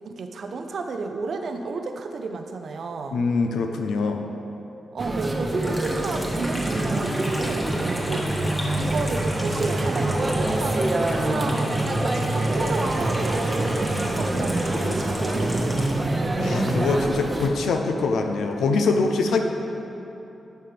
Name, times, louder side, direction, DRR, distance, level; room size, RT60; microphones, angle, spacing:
voice 1, 0.0-3.2 4.9-8.3 8.7-15.9, right 4 dB, 70° right, 6 dB, 0.5 m, -32 dB
voice 2, 3.1-4.2 16.4-19.4, left 3 dB, 85° left, 4 dB, 0.5 m, -23 dB
sound 1, 5.0-17.5, right 1 dB, 35° right, 0.7 m, -25 dB
Water tap faucet / Sink (filling or washing), 5.6-15.9, equal, 15° left, 1.3 m, -34 dB
11.5 x 4.3 x 3.4 m, 3.0 s
cardioid pair, 60°, 0 cm